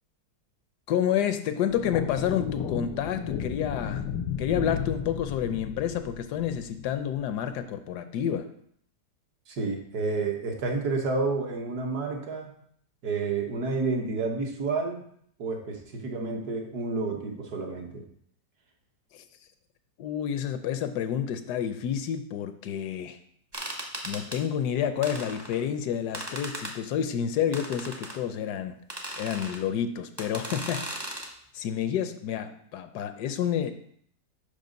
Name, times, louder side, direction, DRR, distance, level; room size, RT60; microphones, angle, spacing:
voice 1, 0.9-4.1 4.4-8.5 19.1-19.2 20.0-23.2 24.0-28.8 29.2-31.1 31.5-33.7, left 9 dB, 75° left, 10 dB, 1.1 m, -29 dB
sound 1, 1.7-7.3, left 8 dB, 90° left, 1.4 m, -34 dB
voice 2, 9.5-12.5 13.0-15.0 15.4-18.0, right 3 dB, 65° right, 2 dB, 1.6 m, -30 dB
sound 2, 23.5-24.4 25.0-25.6 26.1-26.8 27.5-28.2 28.9-29.6 30.2-31.3, right 1 dB, 20° right, 0.7 m, -37 dB
6.1 x 5.3 x 5.2 m, 0.65 s
omnidirectional pair, 1.8 m